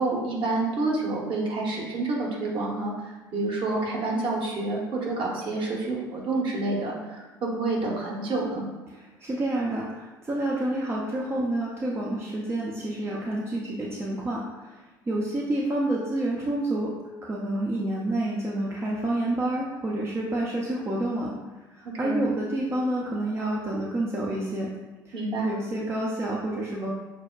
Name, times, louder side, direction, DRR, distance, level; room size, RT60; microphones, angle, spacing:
voice 1, 0.0-2.9 3.3-8.6 22.0-22.2 25.1-25.5, right 2 dB, 45° right, -3 dB, 1.2 m, -28 dB
voice 2, 8.9-14.8 15.1-16.9 17.2-21.3 21.7-24.7 25.1-25.2 25.4-26.9, right 1 dB, 20° right, -4 dB, 0.6 m, -28 dB
5.8 x 2.1 x 2.4 m, 1.2 s
figure-of-eight pair, 60°, 11 cm